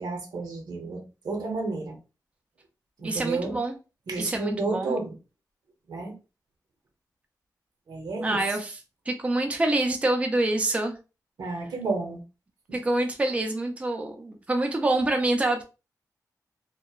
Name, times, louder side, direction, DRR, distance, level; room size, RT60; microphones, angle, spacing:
voice 1, 0.0-2.0 3.0-3.6 4.1-5.1 5.9-6.1 7.9-8.4 11.4-12.2 12.7-12.8, right 3 dB, 90° right, 0.7 m, -31 dB
voice 2, 3.0-3.7 4.2-5.0 8.2-8.8 9.1-11.0 12.7-15.6, right 2 dB, 20° right, 0.4 m, -26 dB
2.8 x 2.1 x 2.3 m
wide cardioid pair, 135°, 7 cm